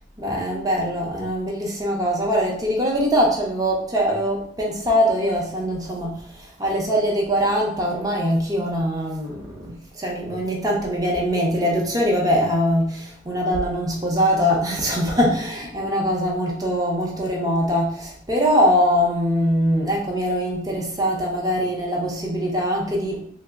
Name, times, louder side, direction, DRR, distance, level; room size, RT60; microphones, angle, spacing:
voice 1, 0.2-6.2 6.6-23.2, equal, 20° right, -2 dB, 0.6 m, -22 dB
3.0 x 2.0 x 3.4 m, 0.62 s
head